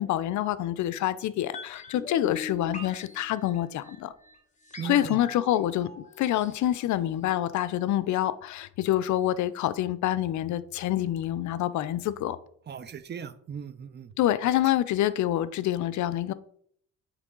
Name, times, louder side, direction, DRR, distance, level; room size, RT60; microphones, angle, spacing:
voice 1, 0.0-4.1 4.8-5.9 6.2-12.4 14.2-16.3, left 13 dB, 70° left, 0.5 m, -27 dB
sound 1, 1.5-7.6 7.8-7.9, left 4 dB, 25° left, 1.4 m, -42 dB
voice 2, 4.8-5.2 12.7-14.1, right 7 dB, 35° right, 0.6 m, -38 dB
8.2 x 3.2 x 3.7 m
cardioid pair, 90°, 30 cm